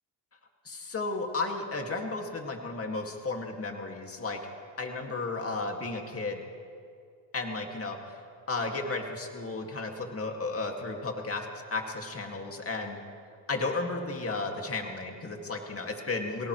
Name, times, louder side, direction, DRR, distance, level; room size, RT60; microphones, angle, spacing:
voice 1, 0.7-4.4 4.8-6.4 7.3-8.0 8.5-13.0 13.5-16.5, left 3 dB, 30° left, 2 dB, 2.2 m, -33 dB
24.0 x 18.5 x 3.2 m, 2.3 s
cardioid pair, 85°, 48 cm